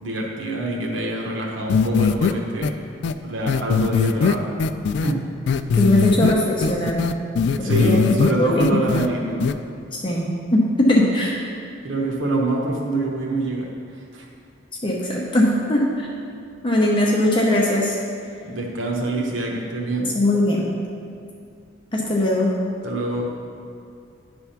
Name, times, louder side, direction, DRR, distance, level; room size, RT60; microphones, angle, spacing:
voice 1, 0.0-2.7 3.2-4.6 5.0-5.2 7.6-9.5 11.8-13.7 14.1-14.2 18.4-20.1 22.8-23.3, right 2 dB, 80° right, -1 dB, 1.0 m, -25 dB
sound 1, 1.7-2.3 2.6-2.7 3.0-3.1 3.5-5.1 5.5-6.3 6.6-8.3 8.6-9.1 9.4-9.5, left 5 dB, 60° left, 0.3 m, -20 dB
voice 2, 5.8-7.0 7.6-8.6 9.9-11.4 14.8-16.1 16.6-18.0 20.0-20.7 21.9-22.5, left 1 dB, 25° left, -3 dB, 0.7 m, -20 dB
10.0 x 3.5 x 5.7 m, 2.4 s
head